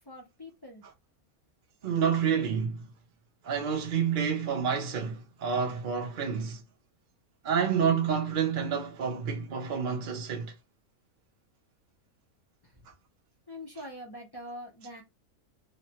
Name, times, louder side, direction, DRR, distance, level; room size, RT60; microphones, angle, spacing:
voice 1, 0.0-0.8 12.6-12.9 13.5-15.0, equal, 30° left, 0.4 m, -44 dB
voice 2, 1.8-2.9 3.4-6.6 7.4-10.5, right 7 dB, 60° right, 0.5 m, -29 dB
3.1 x 2.1 x 2.8 m
omnidirectional pair, 1.5 m